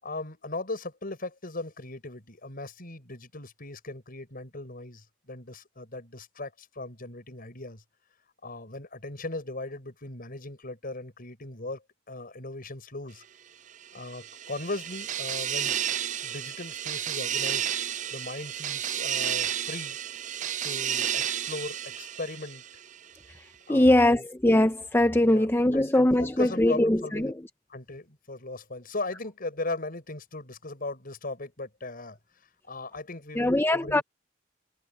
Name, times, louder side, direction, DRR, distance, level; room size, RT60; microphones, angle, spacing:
voice 1, 0.0-7.8 8.4-13.2 13.9-15.8 16.2-17.7 18.1-20.0 20.6-22.6 23.7-24.2 25.2-25.5 25.7-27.3 27.7-32.2 32.7-34.0, left 2 dB, 50° left, 6.0 m, -38 dB
sound 1, 13.8-23.0, right 10 dB, 40° right, 0.4 m, -32 dB
voice 2, 23.7-27.4 33.4-34.0, left 1 dB, 10° left, 0.7 m, -22 dB
head